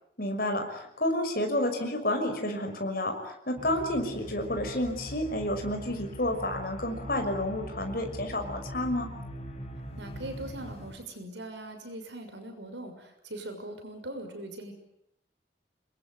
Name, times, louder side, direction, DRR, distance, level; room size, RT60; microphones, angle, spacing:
voice 1, 0.2-9.1, left 1 dB, 55° left, 4 dB, 5.9 m, -30 dB
sound 1, 3.6-11.0, equal, 35° left, 5.2 m, -42 dB
voice 2, 10.0-14.7, right 1 dB, 85° right, 6 dB, 6.4 m, -41 dB
27.0 x 22.0 x 9.4 m, 0.75 s
head